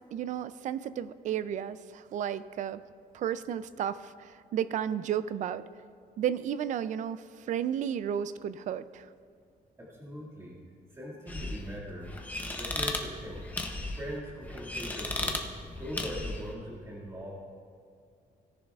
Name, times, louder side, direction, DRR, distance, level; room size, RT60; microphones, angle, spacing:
voice 1, 0.1-2.8 3.1-5.6 6.2-9.1, right 9 dB, 50° right, 14 dB, 0.4 m, -33 dB
voice 2, 9.8-10.6 10.9-12.2 12.5-13.4 13.9-15.4 15.7-17.3, equal, 15° right, -5 dB, 2.0 m, -41 dB
sound 1, 11.3-16.5, left 2 dB, 10° left, 0.7 m, -36 dB
17.5 x 10.5 x 2.4 m, 2.4 s
cardioid pair, 175°, 16 cm